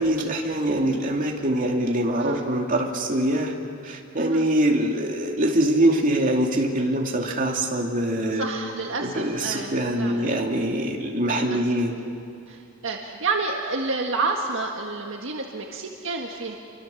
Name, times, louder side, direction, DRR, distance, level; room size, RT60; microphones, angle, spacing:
voice 1, 0.0-3.5 3.8-8.5 9.0-11.9, right 1 dB, 40° right, 0 dB, 2.7 m, -23 dB
voice 2, 2.2-2.5 4.2-4.4 8.3-10.3 11.3-11.7 12.5-16.5, right 3 dB, 65° right, 1 dB, 1.7 m, -29 dB
29.0 x 24.5 x 7.2 m, 2.5 s
head